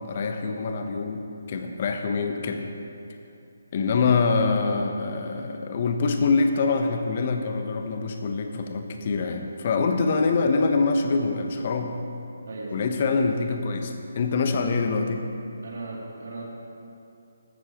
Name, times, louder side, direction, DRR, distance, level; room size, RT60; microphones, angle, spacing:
voice 1, 0.0-2.6 3.7-12.0 12.7-15.2, left 4 dB, 40° left, 5 dB, 1.1 m, -25 dB
voice 2, 12.4-12.9 15.6-16.4, right 2 dB, 60° right, -3 dB, 2.8 m, -37 dB
14.5 x 12.5 x 3.1 m, 2.7 s
figure-of-eight pair, 145°, 0 cm